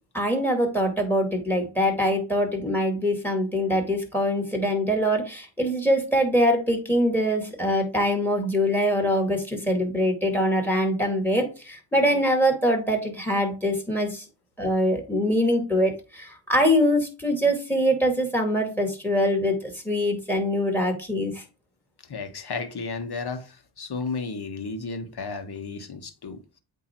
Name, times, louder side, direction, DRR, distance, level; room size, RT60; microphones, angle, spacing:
voice 1, 0.1-14.3 14.6-21.4, equal, 5° left, 2.2 m, -23 dB
voice 2, 22.0-26.4, left 4 dB, 55° left, 1.2 m, -33 dB
8.3 x 2.8 x 4.5 m
cardioid pair, 65°, 47 cm